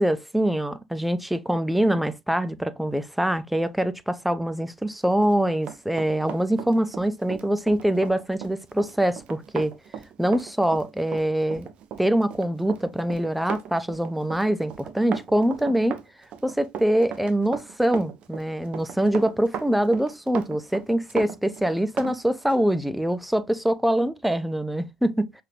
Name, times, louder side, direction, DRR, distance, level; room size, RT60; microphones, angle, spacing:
voice 1, 0.0-9.7 10.2-11.7 12.0-16.0 16.4-25.4, right 1 dB, 5° right, 0.5 m, -24 dB
Run, 5.1-22.2 22.5-22.6, right 8 dB, 50° right, 0.6 m, -37 dB
5.5 x 3.5 x 2.4 m
figure-of-eight pair, 60°, 2 cm